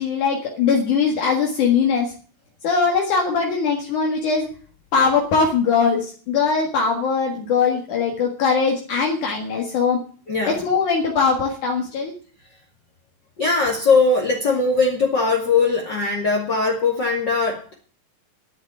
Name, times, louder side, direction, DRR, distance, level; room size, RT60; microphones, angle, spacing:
voice 1, 0.0-2.1 2.6-4.5 4.9-10.0 10.5-12.1, left 5 dB, 65° left, 1 dB, 3.2 m, -21 dB
voice 2, 10.3-10.6 13.4-17.7, left 4 dB, 35° left, -1 dB, 2.7 m, -20 dB
11.0 x 9.0 x 8.9 m, 0.42 s
omnidirectional pair, 3.9 m